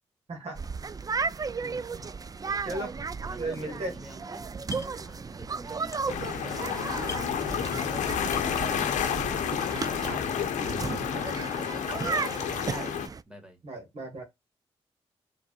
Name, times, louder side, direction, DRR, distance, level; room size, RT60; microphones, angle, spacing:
voice 1, 0.3-0.6 1.6-2.1 2.6-2.9 3.4-3.9 10.0-10.2 10.6-11.2 11.7-11.8 12.7-12.9 13.6-14.2, right 2 dB, 60° right, 1.6 m, -37 dB
sound 1, 0.6-13.2, right 5 dB, 30° right, 0.4 m, -35 dB
voice 2, 2.4-2.9 3.2-4.5 5.0-9.4 9.7-9.9 11.5-12.0 12.4-12.9 13.3-13.6, right 1 dB, 5° right, 2.0 m, -48 dB
sound 2, 3.5-4.2 4.5-5.1 5.4-6.4 6.7-6.8 7.0-7.9 8.2-8.7, left 4 dB, 25° left, 0.6 m, -44 dB
sound 3, 6.1-13.1, left 8 dB, 80° left, 0.6 m, -30 dB
4.8 x 3.4 x 2.4 m
supercardioid pair, 40°, 12 cm